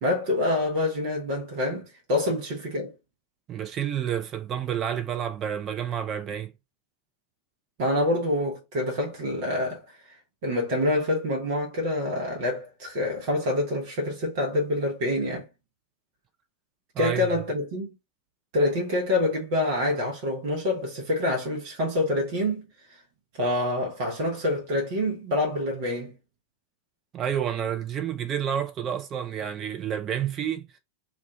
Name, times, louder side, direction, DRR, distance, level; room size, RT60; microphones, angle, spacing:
voice 1, 0.0-2.9 7.8-9.8 10.4-15.5 17.0-17.9 18.5-22.7 23.4-26.2, left 1 dB, 45° right, 1.0 m, -26 dB
voice 2, 3.5-6.5 16.9-17.3 27.1-30.7, right 9 dB, 30° right, 0.6 m, -29 dB
2.5 x 2.4 x 3.3 m
figure-of-eight pair, 90°, 0 cm